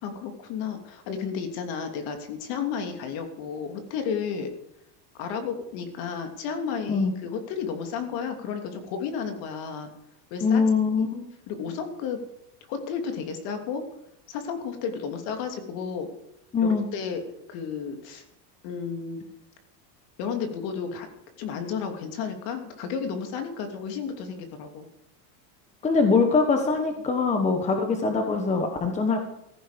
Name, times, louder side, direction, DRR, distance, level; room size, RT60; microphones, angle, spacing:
voice 1, 0.0-4.5 5.1-9.9 10.3-10.6 11.5-12.2 12.7-13.8 14.3-16.1 16.6-18.2 18.6-19.2 20.2-21.1 21.4-24.9, left 6 dB, 50° left, 6 dB, 3.0 m, -32 dB
voice 2, 10.4-11.3 16.5-16.9 25.8-29.3, left 4 dB, 15° left, 5 dB, 1.2 m, -23 dB
16.5 x 14.0 x 5.2 m, 0.80 s
cardioid pair, 170°, 49 cm